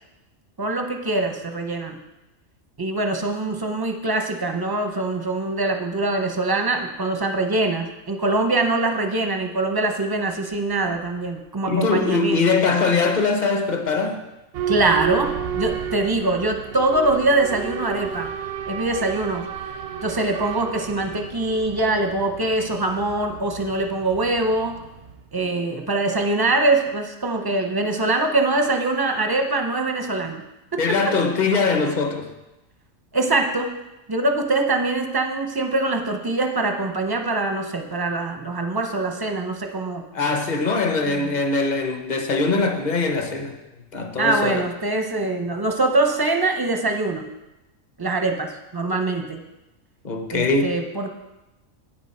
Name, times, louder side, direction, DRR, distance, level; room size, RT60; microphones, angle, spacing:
voice 1, 0.6-2.0 2.8-12.4 14.7-18.3 18.7-19.4 20.0-24.8 25.3-30.4 30.7-31.2 33.1-33.8 34.1-40.0 41.0-41.4 44.2-47.2 48.0-49.4 50.3-51.1, right 2 dB, 25° right, 4 dB, 0.5 m, -23 dB
voice 2, 11.7-14.2 30.8-32.3 40.1-43.5 43.9-44.6 50.0-50.7, left 4 dB, 40° left, 5 dB, 0.9 m, -22 dB
Boat Water vehicle / Alarm, 14.5-25.2, right 7 dB, 65° right, 0.7 m, -32 dB
9.1 x 7.5 x 4.3 m, 0.99 s
omnidirectional pair, 1.4 m